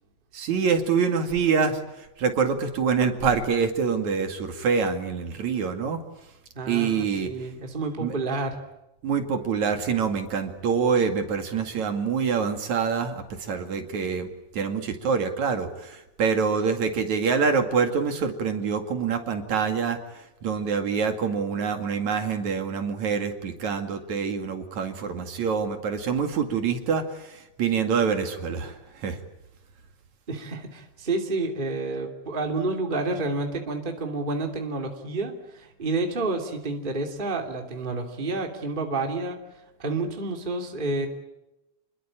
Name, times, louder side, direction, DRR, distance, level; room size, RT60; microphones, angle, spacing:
voice 1, 0.3-6.0 6.7-7.3 8.0-8.2 9.0-14.3 14.5-29.2, right 6 dB, 70° right, 6 dB, 3.5 m, -26 dB
voice 2, 6.5-8.6 30.3-39.4 39.8-41.1, right 2 dB, 15° right, 3 dB, 2.8 m, -29 dB
29.0 x 21.5 x 8.9 m, 0.94 s
omnidirectional pair, 3.5 m